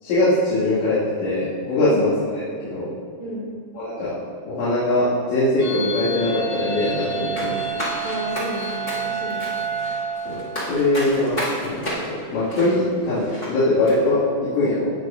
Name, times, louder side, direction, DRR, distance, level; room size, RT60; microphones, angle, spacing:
voice 1, 0.0-2.9 3.7-4.2 4.5-7.6 10.3-14.9, left 1 dB, 80° left, -12 dB, 4.6 m, -22 dB
voice 2, 3.2-3.5 8.0-9.5, equal, 75° right, -7 dB, 1.2 m, -32 dB
sound 1, 5.6-11.0, right 4 dB, 55° left, 2.7 m, -29 dB
sound 2, 7.4-13.5 13.8-14.0, equal, 25° left, 1.3 m, -32 dB
18.0 x 6.1 x 2.7 m, 2.2 s
omnidirectional pair, 5.1 m